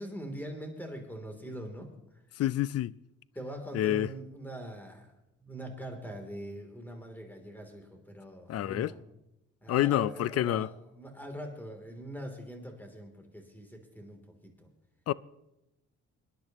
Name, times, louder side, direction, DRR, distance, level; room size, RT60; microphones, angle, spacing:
voice 1, 0.0-1.9 3.3-5.1 5.4-9.0 9.6-14.7, right 1 dB, 5° left, 3.1 m, -42 dB
voice 2, 2.3-2.9 3.7-4.1 8.5-8.9 9.7-10.7 15.1-15.2, left 13 dB, 55° left, 0.5 m, -28 dB
25.0 x 10.5 x 3.0 m
cardioid pair, 90°, 30 cm